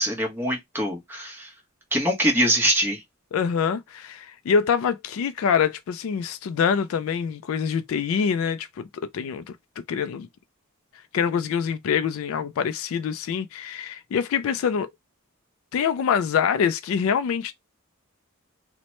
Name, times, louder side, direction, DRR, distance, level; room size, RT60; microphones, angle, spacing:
voice 1, 0.0-1.5 1.9-3.0, equal, 10° right, 0.9 m, -23 dB
voice 2, 3.3-8.8 9.1-9.5 9.9-10.3 11.1-14.9 15.7-17.5, left 7 dB, 65° left, 0.3 m, -25 dB
2.9 x 2.1 x 2.9 m
head